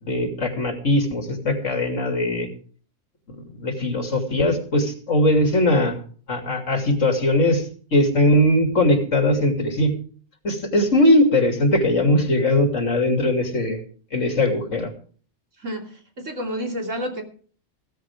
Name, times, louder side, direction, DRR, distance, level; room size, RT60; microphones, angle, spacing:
voice 1, 0.0-2.5 3.4-6.0 6.3-9.9 10.4-13.8 14.1-14.9, left 1 dB, 85° left, 4 dB, 3.1 m, -20 dB
voice 2, 15.6-17.2, equal, 85° right, 2 dB, 3.5 m, -30 dB
16.0 x 14.5 x 3.6 m, 0.43 s
omnidirectional pair, 1.3 m